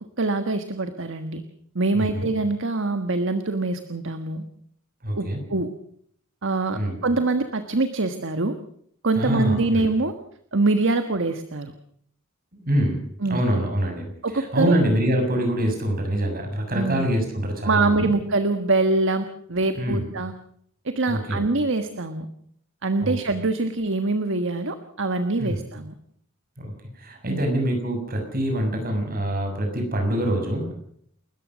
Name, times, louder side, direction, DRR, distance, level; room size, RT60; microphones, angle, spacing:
voice 1, 0.2-1.4 1.7-4.4 5.2-5.7 6.4-8.6 9.0-10.1 10.5-11.7 13.2-13.4 14.2-14.8 16.7-17.1 17.6-20.3 20.8-22.3 22.8-25.9 27.3-27.4, right 3 dB, 60° right, 8 dB, 1.5 m, -24 dB
voice 2, 1.9-2.3 5.0-5.4 6.7-6.9 9.1-9.8 12.6-13.0 13.3-14.1 14.3-18.1 19.7-20.0 21.1-21.4 23.0-23.2 25.4-25.6 26.6-30.7, equal, 45° right, 4 dB, 6.8 m, -25 dB
30.0 x 14.0 x 6.2 m, 0.66 s
head